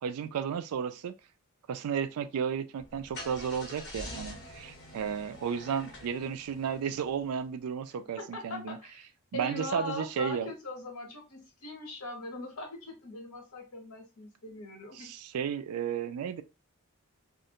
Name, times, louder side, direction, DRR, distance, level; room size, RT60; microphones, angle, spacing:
voice 1, 0.0-1.1 1.7-8.8 9.3-10.5 15.0-16.4, right 7 dB, 75° right, 0.3 m, -33 dB
Car / Engine starting, 2.8-7.4, left 1 dB, 55° left, 0.9 m, -46 dB
voice 2, 8.2-9.1 9.3-15.1, left 1 dB, 75° left, 0.9 m, -40 dB
2.5 x 2.1 x 2.8 m
head